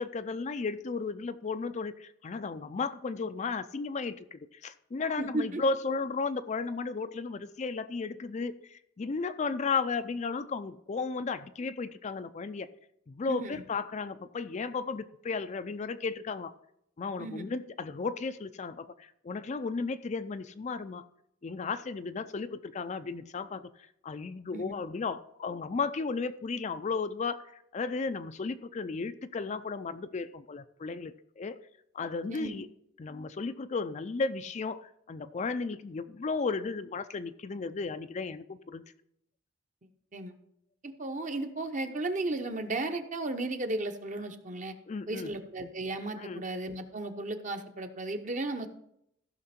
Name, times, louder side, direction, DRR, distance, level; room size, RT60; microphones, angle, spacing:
voice 1, 0.0-12.7 13.1-16.5 17.0-21.0 21.4-23.7 24.0-31.6 31.9-32.7 33.0-38.8 44.9-45.3 46.2-46.4, left 4 dB, 35° left, 11 dB, 0.4 m, -34 dB
voice 2, 5.2-5.6 13.3-13.6 17.2-17.4 24.5-24.7 32.3-32.5 40.1-40.3 40.8-44.7 45.1-48.7, right 2 dB, 40° right, 6 dB, 0.9 m, -35 dB
15.0 x 5.9 x 4.3 m, 0.76 s
head